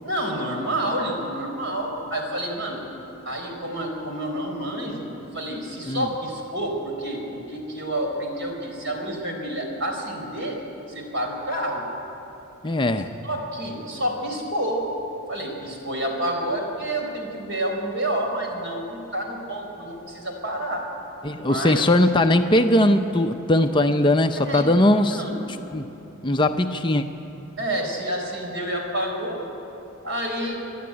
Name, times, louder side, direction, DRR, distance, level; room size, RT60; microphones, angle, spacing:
voice 1, 0.0-2.8 3.2-5.1 5.3-10.6 10.9-11.8 13.2-14.8 15.3-20.9 21.4-22.0 24.4-24.7 25.1-25.4 27.6-29.4 30.0-30.6, right 1 dB, 55° right, 1 dB, 4.3 m, -29 dB
voice 2, 12.6-13.1 21.2-25.2 25.7-25.9 26.2-27.0, left 1 dB, 20° left, 6 dB, 0.6 m, -20 dB
26.5 x 11.0 x 9.6 m, 2.9 s
head